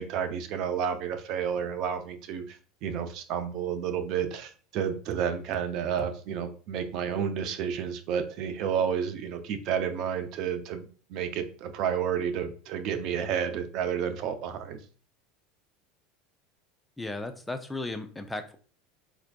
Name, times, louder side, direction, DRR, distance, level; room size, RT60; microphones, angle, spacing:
voice 1, 0.0-14.8, right 8 dB, 55° right, 9 dB, 0.5 m, -31 dB
voice 2, 17.0-18.6, left 2 dB, 10° left, 6 dB, 0.4 m, -35 dB
4.3 x 2.5 x 2.2 m, 0.40 s
supercardioid pair, 100°, 0 cm